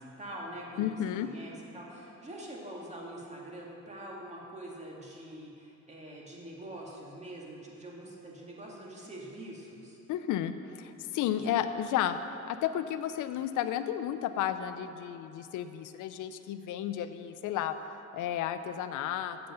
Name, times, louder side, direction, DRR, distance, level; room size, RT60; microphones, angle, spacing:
voice 1, 0.0-0.9 1.2-10.0 11.3-11.6, right 1 dB, 20° right, -3 dB, 2.3 m, -44 dB
voice 2, 0.8-1.3 10.1-12.2 12.5-17.8 18.1-19.4, left 10 dB, 85° left, 11 dB, 0.5 m, -32 dB
7.8 x 7.7 x 6.9 m, 2.9 s
cardioid pair, 90°, 30 cm